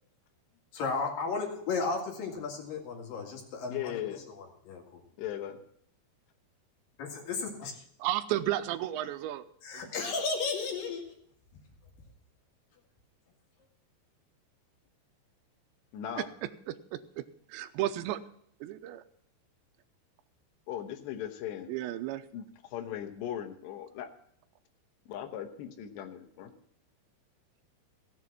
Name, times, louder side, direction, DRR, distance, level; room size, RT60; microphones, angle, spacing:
voice 1, 0.7-5.0 7.0-7.7 9.6-11.0, left 4 dB, 55° left, 3.4 m, -34 dB
voice 2, 3.7-4.2 5.2-5.6 7.6-7.7 15.9-16.3 20.7-21.7 22.3-24.1 25.1-26.5, left 10 dB, 80° left, 3.1 m, -38 dB
voice 3, 8.0-10.1 16.2-16.3 16.7-18.2 18.6-19.0 21.7-22.2, right 14 dB, 90° right, 3.0 m, -34 dB
16.0 x 7.5 x 6.0 m
omnidirectional pair, 5.0 m